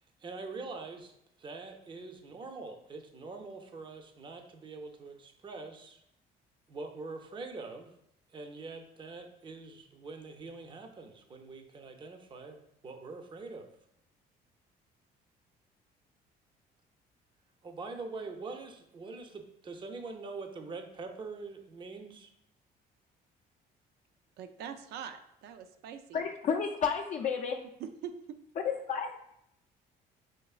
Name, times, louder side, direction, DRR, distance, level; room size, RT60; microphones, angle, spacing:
voice 1, 0.2-6.0 6.7-7.9 8.3-13.7 17.6-22.3, right 3 dB, 30° right, 5 dB, 0.5 m, -44 dB
voice 2, 24.4-26.2 27.8-28.4, right 8 dB, 75° right, 9 dB, 0.4 m, -43 dB
voice 3, 26.1-27.6 28.6-29.1, left 6 dB, 45° left, 0 dB, 0.4 m, -31 dB
5.7 x 3.0 x 2.4 m, 0.77 s
cardioid pair, 110°, 17 cm